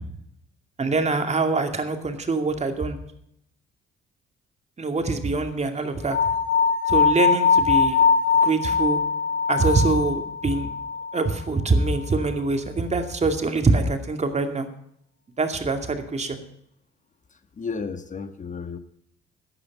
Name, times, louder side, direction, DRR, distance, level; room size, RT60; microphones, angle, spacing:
voice 1, 0.8-3.0 4.8-6.2 6.9-8.0 8.4-9.0 9.5-10.7 11.1-14.7 15.4-16.4, right 3 dB, 35° right, 6 dB, 2.4 m, -24 dB
sound 1, 6.1-11.2, left 5 dB, 65° left, 1.9 m, -21 dB
voice 2, 17.6-18.8, left 5 dB, 40° left, 10 dB, 1.3 m, -32 dB
13.5 x 10.0 x 5.3 m, 0.74 s
supercardioid pair, 70°, 20 cm